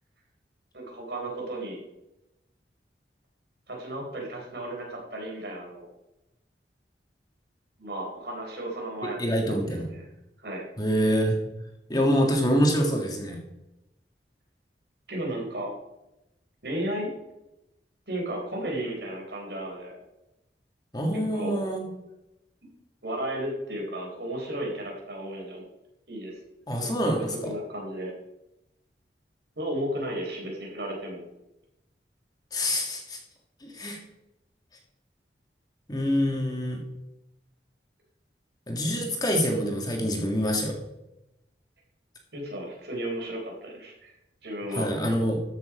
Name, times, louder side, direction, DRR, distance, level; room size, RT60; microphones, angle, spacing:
voice 1, 0.7-1.8 3.7-5.9 7.8-9.2 9.5-10.1 10.4-10.6 15.1-15.7 16.6-17.1 18.1-20.0 21.1-21.7 23.0-25.6 26.1-26.4 26.8-27.1 27.4-28.1 29.6-31.2 42.3-44.1 44.4-44.9, right 1 dB, 65° right, -1 dB, 4.0 m, -34 dB
voice 2, 9.0-9.9 10.8-11.4 11.9-13.4 20.9-21.9 26.7-27.5 32.5-33.2 33.6-34.0 35.9-36.8 38.7-40.8 44.8-45.4, equal, 20° left, 2 dB, 1.9 m, -26 dB
13.5 x 6.8 x 5.0 m, 0.91 s
head